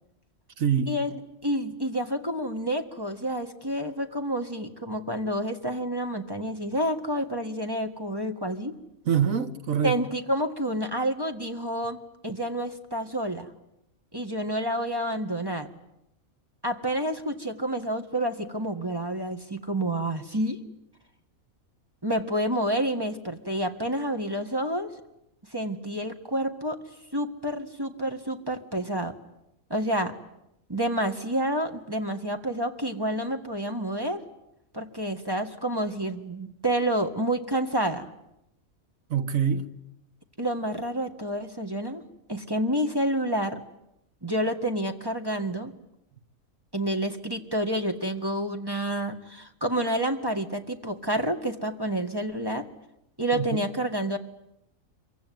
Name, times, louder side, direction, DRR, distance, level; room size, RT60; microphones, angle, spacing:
voice 1, 0.6-0.9 9.1-10.0 39.1-39.7 53.3-53.5, right 7 dB, 75° right, 1.7 m, -25 dB
voice 2, 1.4-8.8 9.8-13.5 14.1-15.7 16.6-20.6 22.0-24.9 25.5-26.8 27.1-29.2 29.7-30.2 30.7-34.2 34.7-38.1 40.4-42.0 42.3-43.6 44.2-45.7 46.7-52.7 53.2-54.2, right 1 dB, 15° right, 1.9 m, -29 dB
26.0 x 24.0 x 9.5 m
omnidirectional pair, 1.4 m